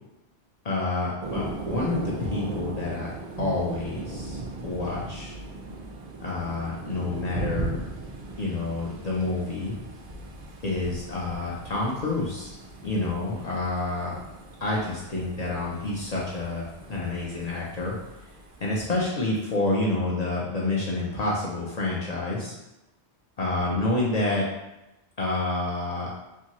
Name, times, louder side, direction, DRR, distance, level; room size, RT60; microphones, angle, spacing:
voice 1, 0.6-3.1 3.4-5.4 6.2-7.8 8.4-9.8 10.6-12.6 12.8-14.2 14.6-18.0 18.6-22.5 23.4-24.4 25.2-26.1, left 2 dB, 55° left, -4 dB, 0.4 m, -28 dB
Thunder, 1.2-19.0, right 3 dB, 55° right, 0.4 m, -38 dB
2.6 x 2.6 x 2.9 m, 0.98 s
omnidirectional pair, 1.1 m